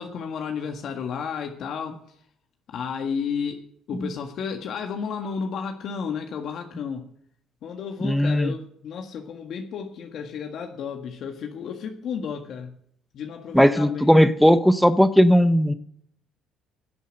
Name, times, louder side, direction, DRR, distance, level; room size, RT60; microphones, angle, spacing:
voice 1, 0.0-2.0 2.7-3.6 3.9-7.1 7.6-12.7 13.1-14.2, left 6 dB, 60° left, 3 dB, 1.7 m, -32 dB
voice 2, 8.0-8.5 13.5-15.7, equal, ahead, 12 dB, 0.7 m, -17 dB
17.0 x 8.1 x 6.5 m, 0.68 s
cardioid pair, 100°, 0 cm